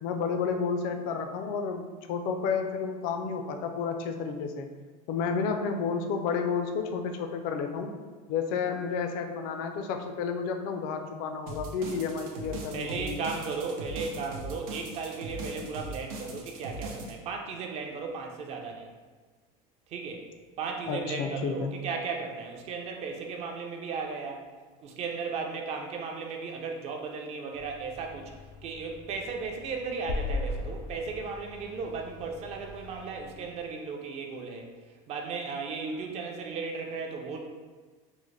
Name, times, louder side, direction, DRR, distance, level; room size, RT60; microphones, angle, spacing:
voice 1, 0.0-4.7 5.1-7.9 8.3-13.2 20.9-21.7, left 5 dB, 55° left, 5 dB, 0.4 m, -31 dB
sound 1, 11.5-17.1, right 2 dB, 90° right, 0.6 m, -40 dB
voice 2, 12.7-18.9 19.9-20.3 20.6-24.5 24.8-28.3 28.6-34.7 35.1-37.4, right 4 dB, 40° right, 2 dB, 0.5 m, -35 dB
sound 2, 27.5-33.7, left 2 dB, 80° left, 0.8 m, -39 dB
3.8 x 2.1 x 3.1 m, 1.4 s
supercardioid pair, 135°, 17 cm